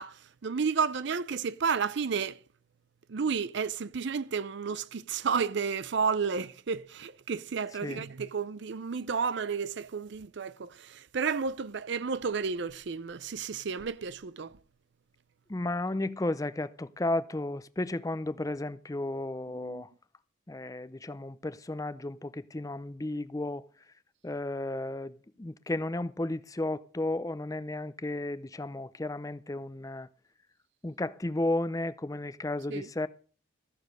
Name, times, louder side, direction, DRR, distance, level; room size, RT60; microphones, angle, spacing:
voice 1, 0.0-2.4 3.1-14.6 19.5-19.8 32.7-32.9, right 5 dB, 60° right, 0.5 m, -32 dB
voice 2, 15.5-19.9 20.5-23.6 24.2-30.1 30.8-33.1, left 2 dB, 15° left, 0.5 m, -33 dB
13.5 x 7.1 x 6.4 m
head